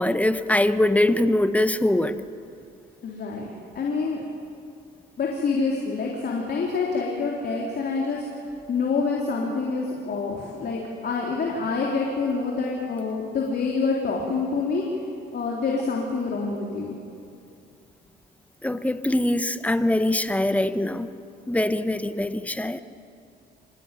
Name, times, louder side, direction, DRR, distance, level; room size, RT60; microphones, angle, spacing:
voice 1, 0.0-2.2 18.6-21.1 21.5-22.8, left 1 dB, 5° left, 11 dB, 1.1 m, -23 dB
voice 2, 3.0-3.5 3.8-4.2 5.2-8.4 8.7-14.8 15.3-17.0, left 4 dB, 55° left, -2 dB, 3.6 m, -27 dB
26.0 x 18.5 x 9.2 m, 2.5 s
cardioid pair, 90°, 20 cm